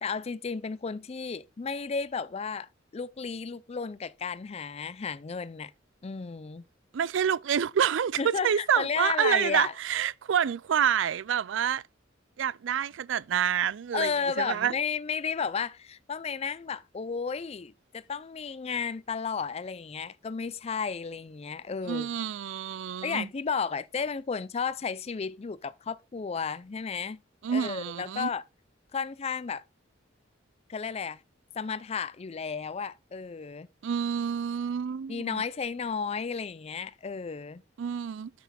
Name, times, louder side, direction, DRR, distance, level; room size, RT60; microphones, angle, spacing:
voice 1, 0.0-5.7 6.0-6.6 8.2-9.7 13.9-22.1 23.0-27.2 27.5-28.4 28.9-29.6 30.7-31.2 31.5-33.7 35.1-37.6, left 5 dB, 30° left, 0.4 m, -33 dB
voice 2, 6.9-11.8 12.4-14.7 21.9-23.3 27.4-28.3 33.8-35.4 37.8-38.3, right 8 dB, 70° right, 0.4 m, -28 dB
9.3 x 6.0 x 4.1 m
head